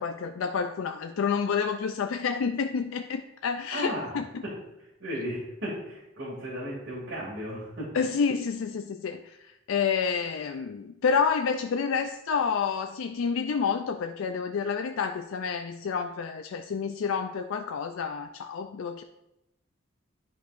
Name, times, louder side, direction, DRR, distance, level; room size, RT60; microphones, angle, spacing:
voice 1, 0.0-4.4 7.9-19.0, left 6 dB, 90° left, 6 dB, 0.4 m, -29 dB
voice 2, 3.7-4.1 4.4-4.5 5.0-7.9, equal, 75° right, -9 dB, 2.6 m, -35 dB
10.0 x 5.4 x 2.5 m, 0.91 s
head